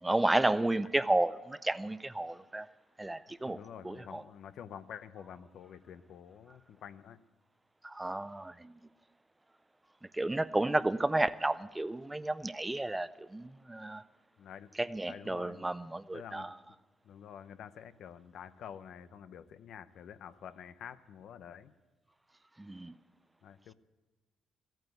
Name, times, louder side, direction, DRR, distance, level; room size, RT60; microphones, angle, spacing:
voice 1, 0.0-2.7 3.0-3.6 3.8-4.2 7.8-8.7 10.1-14.0 14.8-16.5 22.6-22.9, right 2 dB, 15° right, 0.5 m, -32 dB
voice 2, 3.4-7.2 14.4-14.7 15.0-15.7 16.1-16.5 17.0-21.7 23.4-23.7, left 8 dB, 70° left, 0.6 m, -48 dB
15.0 x 9.0 x 8.0 m
cardioid pair, 90°, 0 cm